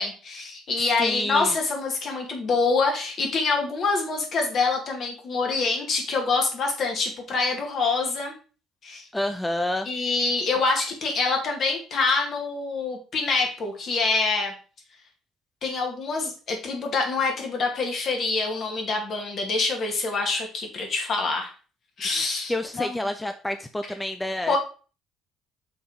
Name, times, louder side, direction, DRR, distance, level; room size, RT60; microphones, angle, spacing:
voice 1, 0.0-8.3 8.8-9.0 9.9-14.5 15.6-21.5 22.0-23.0 24.5-24.6, left 3 dB, 55° left, 2 dB, 2.1 m, -26 dB
voice 2, 1.0-1.5 9.1-9.9 22.5-24.6, left 1 dB, 10° left, 8 dB, 0.6 m, -28 dB
5.8 x 3.9 x 4.9 m, 0.38 s
hypercardioid pair, 55°, 0 cm